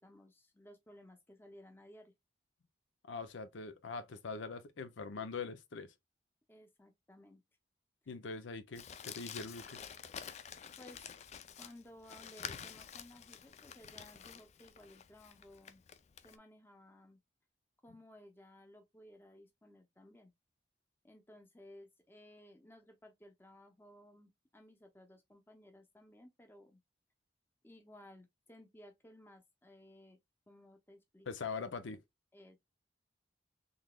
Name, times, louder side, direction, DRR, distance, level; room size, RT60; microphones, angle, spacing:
voice 1, 0.0-2.1 6.5-7.4 10.8-11.0 11.6-15.8 16.2-17.2 17.8-20.3 21.0-26.8 27.6-30.2 30.5-31.3 32.3-32.6, left 1 dB, 10° left, 0.7 m, -58 dB
voice 2, 3.0-5.9 8.1-9.8 31.3-32.0, left 4 dB, 85° left, 0.6 m, -43 dB
Crumpling crinkling, 8.7-16.4, left 8 dB, 35° left, 0.3 m, -49 dB
3.9 x 3.3 x 2.2 m
head